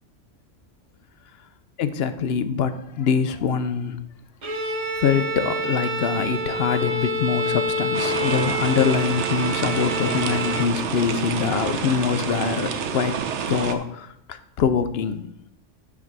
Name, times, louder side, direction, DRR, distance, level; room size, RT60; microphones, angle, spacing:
voice 1, 1.8-4.0 5.0-13.1 13.5-15.3, left 7 dB, 65° left, 0.8 m, -24 dB
Bowed string instrument, 4.4-10.8, right 1 dB, 35° right, 0.6 m, -27 dB
sound 1, 7.9-13.8, right 7 dB, 70° right, 1.0 m, -28 dB
9.3 x 3.6 x 6.0 m
omnidirectional pair, 1.2 m